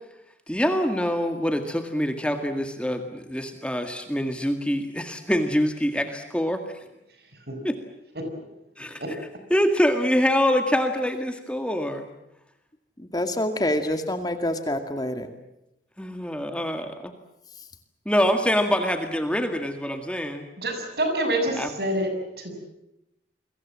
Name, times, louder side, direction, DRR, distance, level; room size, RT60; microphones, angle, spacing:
voice 1, 0.5-6.6 7.6-7.8 8.8-9.2 9.5-12.1 16.0-17.1 18.1-20.5 21.6-21.7, equal, 5° left, 6 dB, 2.0 m, -25 dB
voice 2, 13.0-15.3, left 1 dB, 20° left, 8 dB, 2.2 m, -26 dB
voice 3, 20.6-22.1 22.4-22.6, right 1 dB, 60° right, 6 dB, 7.1 m, -27 dB
29.0 x 23.0 x 7.6 m, 0.86 s
head